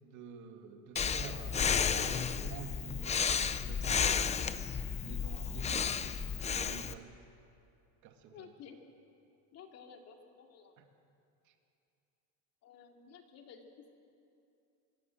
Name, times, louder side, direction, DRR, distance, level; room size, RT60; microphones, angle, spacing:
voice 1, 0.0-4.3 4.5-4.6 5.0-6.1 6.5-7.1 8.0-8.5 10.8-10.9 11.5-11.6, right 6 dB, 60° right, 4 dB, 2.6 m, -48 dB
Breathing, 1.0-6.9, left 7 dB, 20° left, 0.6 m, -32 dB
voice 2, 8.3-8.8 9.5-10.7 12.6-13.7, left 7 dB, 45° left, 3 dB, 2.8 m, -53 dB
24.5 x 23.0 x 7.8 m, 2.6 s
cardioid pair, 145°, 34 cm